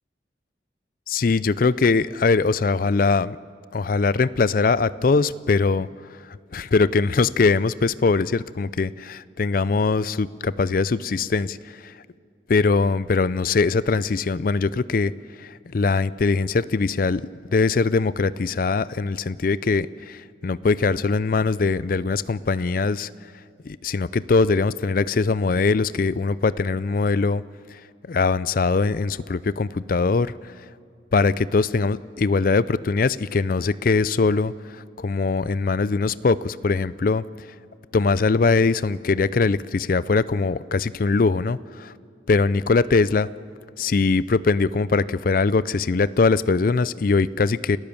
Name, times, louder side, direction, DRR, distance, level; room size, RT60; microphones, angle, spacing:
voice 1, 1.1-3.4 3.7-5.9 6.5-11.6 11.8-11.9 12.5-15.1 15.4-17.2 17.5-23.1 23.7-27.4 28.1-30.3 31.1-34.5 35.0-37.2 37.9-41.9 42.3-43.3 43.8-47.8, left 4 dB, 45° left, 18 dB, 0.4 m, -21 dB
29.5 x 14.0 x 7.0 m, 2.4 s
head